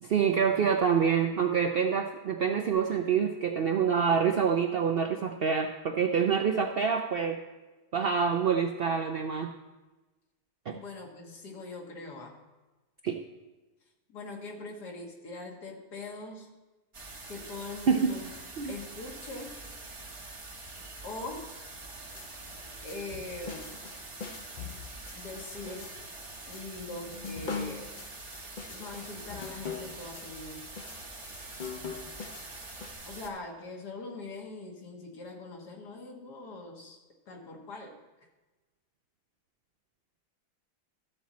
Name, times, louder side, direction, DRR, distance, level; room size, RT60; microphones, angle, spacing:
voice 1, 0.0-7.4 7.9-9.5 10.7-10.8 13.0-13.2 17.9-18.1 18.6-18.7, right 6 dB, 85° right, 4 dB, 0.5 m, -26 dB
voice 2, 10.7-12.4 14.1-16.5 17.3-18.3 18.7-19.6 21.0-21.5 22.8-23.7 25.1-26.0 26.4-28.0 28.7-30.7 33.0-37.0 37.3-38.0, left 2 dB, 85° left, 1 dB, 2.0 m, -42 dB
sound 1, 16.9-33.3, right 2 dB, 25° right, 0.7 m, -45 dB
sound 2, 22.0-32.9, left 5 dB, 55° left, 0.5 m, -43 dB
13.0 x 7.3 x 4.1 m, 1.2 s
omnidirectional pair, 1.7 m